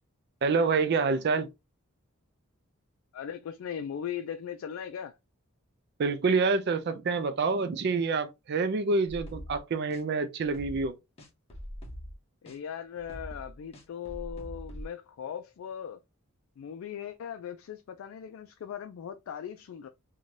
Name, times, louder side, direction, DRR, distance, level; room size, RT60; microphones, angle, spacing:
voice 1, 0.4-1.5 6.0-11.0, right 4 dB, 50° right, 0.4 m, -27 dB
voice 2, 3.1-5.2 12.4-16.0 16.6-19.9, left 8 dB, 70° left, 0.3 m, -39 dB
sound 1, 9.1-9.6 9.9-10.0 10.4-10.9 11.2-12.2 12.5-12.6 13.0-14.9, equal, 30° left, 0.7 m, -43 dB
2.6 x 2.3 x 3.1 m
head